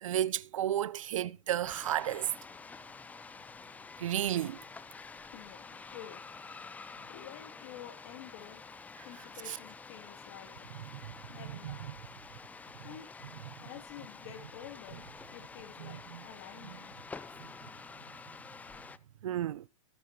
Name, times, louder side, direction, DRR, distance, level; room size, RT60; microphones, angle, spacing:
voice 1, 0.0-2.3 4.0-4.6 9.5-9.6 11.6-11.7 15.8-15.9 19.2-19.6, right 11 dB, 80° right, 0.7 m, -32 dB
sound 1, 1.6-19.0, left 4 dB, 10° left, 0.5 m, -49 dB
voice 2, 5.2-8.6 9.0-10.7 11.3-12.1 12.5-13.1 13.6-17.1, left 11 dB, 50° left, 2.5 m, -50 dB
19.0 x 7.8 x 2.9 m
hypercardioid pair, 130°, 17 cm